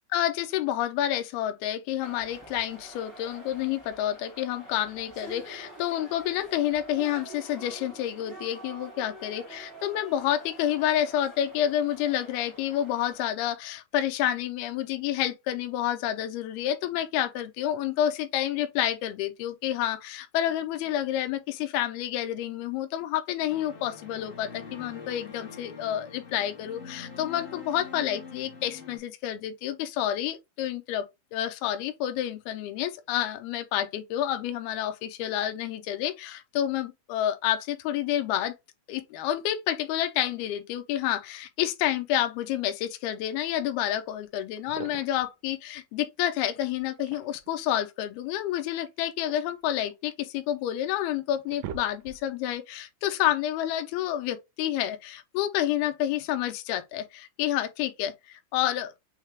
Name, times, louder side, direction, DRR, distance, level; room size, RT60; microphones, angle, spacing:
voice 1, 0.1-31.0 31.3-38.5 38.9-58.9, left 11 dB, 80° left, 2.5 m, -29 dB
sound 1, 2.0-13.2, right 2 dB, 20° right, 0.5 m, -47 dB
sound 2, 23.5-29.0, left 5 dB, 60° left, 0.7 m, -44 dB
sound 3, 44.1-44.2 44.6-45.3 46.8-47.6 48.9-50.3 50.8-50.9 51.3-52.4, right 8 dB, 80° right, 2.0 m, -43 dB
6.5 x 2.3 x 3.3 m
omnidirectional pair, 4.6 m